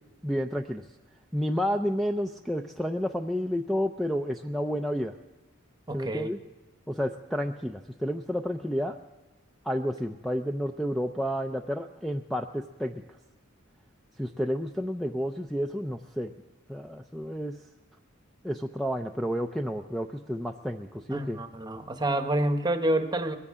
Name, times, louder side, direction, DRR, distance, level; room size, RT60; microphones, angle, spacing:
voice 1, 0.2-0.8 1.3-5.2 5.9-6.4 6.9-9.0 9.6-13.0 14.2-16.3 16.7-17.6 18.4-21.4, equal, ahead, 5 dB, 0.4 m, -30 dB
voice 2, 5.9-6.3 21.1-23.4, right 1 dB, 20° right, 7 dB, 0.9 m, -28 dB
21.5 x 15.5 x 3.6 m, 1.2 s
head